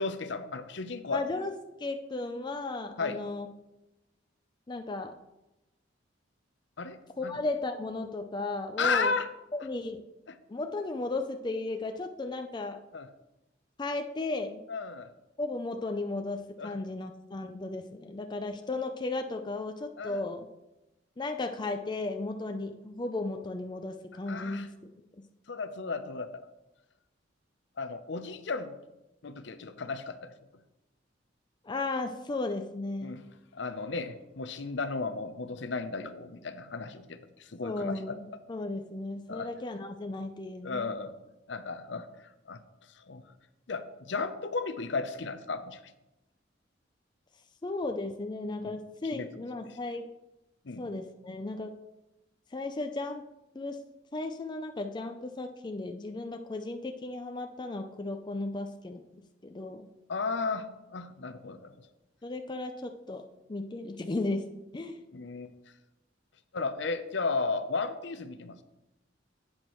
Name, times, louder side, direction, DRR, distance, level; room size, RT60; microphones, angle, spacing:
voice 1, 0.0-1.2 3.0-3.2 6.8-7.4 8.8-9.3 10.3-10.4 12.9-13.1 14.7-15.1 16.6-16.7 20.0-20.2 24.3-24.7 25.5-26.4 27.8-28.8 29.2-30.3 33.0-33.2 33.5-38.2 39.3-39.5 40.6-41.1 41.5-42.1 42.5-42.6 43.0-43.2 43.7-45.8 48.7-48.8 49.1-49.6 50.6-50.9 60.1-61.7 65.1-65.5 66.5-68.6, left 4 dB, 65° left, 10 dB, 0.7 m, -34 dB
voice 2, 1.1-1.5 1.8-3.5 4.7-5.2 7.2-9.1 9.5-10.0 10.5-12.8 13.8-14.6 15.4-20.5 21.2-24.7 31.6-33.2 37.6-40.9 47.6-50.1 50.8-51.7 52.5-53.2 53.5-53.8 54.1-59.0 59.4-59.9 62.2-65.0, left 2 dB, 25° left, 5 dB, 0.4 m, -35 dB
10.5 x 8.7 x 3.1 m, 0.97 s
head